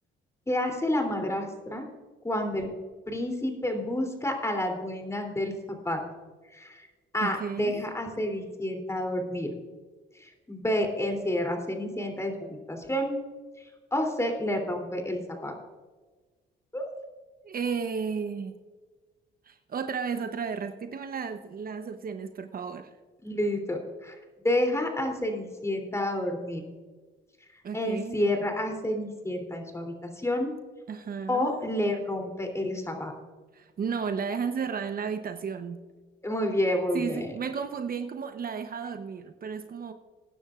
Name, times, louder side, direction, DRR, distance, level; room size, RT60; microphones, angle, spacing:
voice 1, 0.5-1.8 2.2-2.7 3.1-6.0 6.5-6.9 7.1-9.5 10.2-13.2 13.9-15.5 16.7-16.8 23.2-24.1 24.4-26.6 27.7-30.5 31.3-33.1 36.2-37.3, left 1 dB, 15° left, 3 dB, 3.1 m, -29 dB
voice 2, 7.2-7.8 17.4-18.6 19.5-22.9 27.6-28.2 30.9-31.5 33.5-35.8 36.9-39.9, right 6 dB, 50° right, 8 dB, 0.9 m, -33 dB
20.5 x 10.0 x 2.5 m, 1.3 s
cardioid pair, 90°, 20 cm